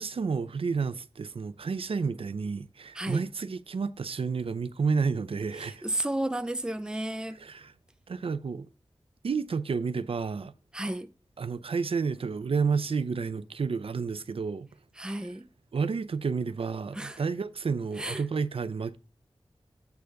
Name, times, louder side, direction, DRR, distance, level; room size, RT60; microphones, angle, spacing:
voice 1, 0.0-5.9 7.3-7.7 8.1-8.7 9.2-10.5 11.4-14.7 15.1-15.2 15.7-19.0, right 5 dB, 75° right, 0.5 m, -30 dB
voice 2, 5.6-7.4 10.7-11.1 15.0-15.5 16.9-17.2 18.0-18.2, right 1 dB, 10° right, 0.5 m, -32 dB
8.2 x 3.4 x 6.3 m
wide cardioid pair, 85°, 10 cm